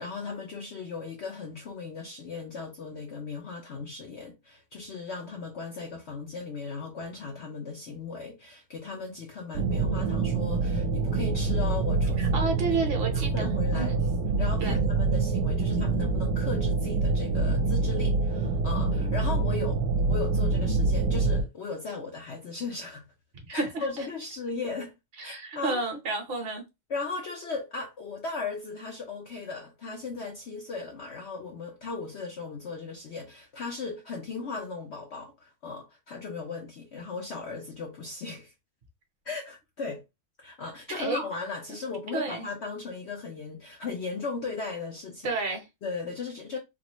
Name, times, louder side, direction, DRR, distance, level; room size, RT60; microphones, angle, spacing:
voice 1, 0.0-12.4 12.7-12.8 13.1-13.9 14.4-19.8 20.1-23.0 23.5-24.9 25.2-25.8 26.9-38.5 39.3-40.0 40.4-45.4 45.8-46.6, left 4 dB, 70° left, 0.6 m, -37 dB
sound 1, 9.5-21.4, right 3 dB, 75° right, 1.2 m, -26 dB
voice 2, 12.2-14.0 14.6-14.8 23.5-23.9 25.2-26.6 41.0-41.2 42.1-42.5 45.2-45.7, right 3 dB, 45° right, 0.9 m, -31 dB
3.9 x 2.1 x 2.9 m
omnidirectional pair, 1.9 m